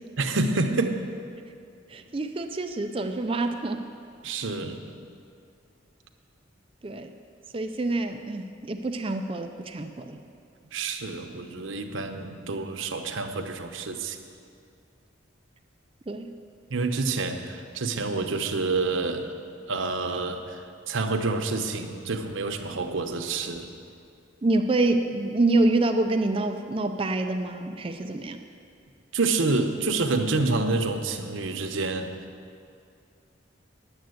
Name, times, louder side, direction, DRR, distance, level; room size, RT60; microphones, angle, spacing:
voice 1, 0.2-1.0 4.2-5.0 10.7-14.2 16.7-19.3 19.7-23.7 29.1-32.1, right 3 dB, 80° right, 5 dB, 0.9 m, -28 dB
voice 2, 1.9-3.8 6.8-7.1 7.5-10.2 16.1-16.3 24.4-28.4, right 2 dB, 25° right, 6 dB, 0.4 m, -26 dB
10.5 x 8.0 x 7.9 m, 2.4 s
head